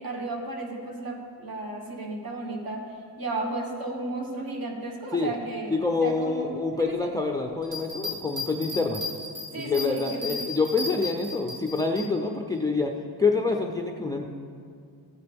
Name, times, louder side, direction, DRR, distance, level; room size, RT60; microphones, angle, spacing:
voice 1, 0.0-7.1 9.5-10.4, right 2 dB, 50° right, 1 dB, 1.6 m, -34 dB
voice 2, 5.7-9.0 9.6-12.9 13.2-14.3, left 3 dB, 10° left, 3 dB, 0.4 m, -26 dB
sound 1, 7.6-12.0, left 3 dB, 70° right, 3.2 m, -35 dB
14.5 x 9.8 x 3.5 m, 2.3 s
cardioid pair, 125°, 46 cm